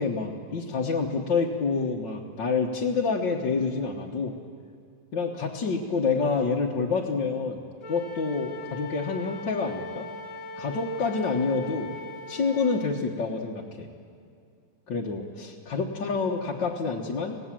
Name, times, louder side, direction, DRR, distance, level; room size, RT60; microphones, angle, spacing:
voice 1, 0.0-4.4 5.1-10.1 10.6-11.9 12.3-13.9 14.9-17.4, left 4 dB, 70° left, -3 dB, 2.0 m, -28 dB
Wind instrument woodwind instrument, 7.8-13.0, left 2 dB, 40° left, 2.8 m, -40 dB
25.5 x 18.5 x 7.6 m, 2.4 s
omnidirectional pair, 2.0 m